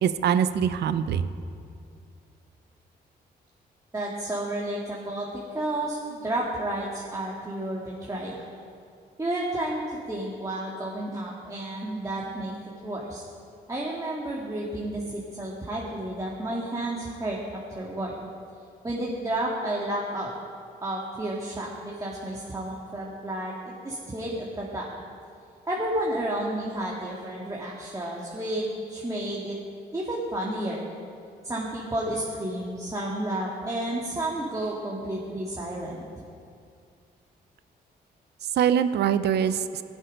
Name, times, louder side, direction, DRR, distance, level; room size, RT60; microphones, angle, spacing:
voice 1, 0.0-1.3 38.5-39.8, right 8 dB, 75° right, 12 dB, 0.7 m, -23 dB
voice 2, 3.9-8.5 9.2-12.6 12.8-13.2 13.7-18.2 18.8-20.3 20.8-24.9 25.7-29.6 29.9-30.9 31.4-36.2, right 1 dB, 20° right, -4 dB, 2.0 m, -31 dB
17.0 x 8.3 x 5.3 m, 2.4 s
cardioid pair, 85°, 17 cm